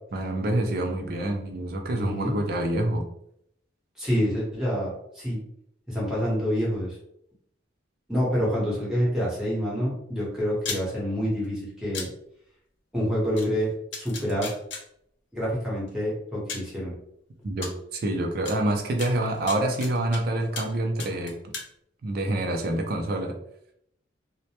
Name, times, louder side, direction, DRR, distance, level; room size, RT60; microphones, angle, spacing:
voice 1, 0.1-3.0 17.4-21.3 22.0-23.3, right 1 dB, 50° right, 2 dB, 0.4 m, -27 dB
voice 2, 1.9-2.4 4.0-5.4 5.9-7.0 8.1-12.1 12.9-14.5 15.3-16.9, equal, 5° right, -7 dB, 0.9 m, -27 dB
sound 1, 10.6-10.8 11.9-12.1 13.4-13.5 13.9-14.8 15.9-16.0 16.5-16.7 17.6-17.7 18.5-18.6 19.0-20.2 20.6-20.7 21.0-21.7, left 4 dB, 70° left, 0.5 m, -35 dB
2.1 x 2.1 x 2.8 m, 0.74 s
head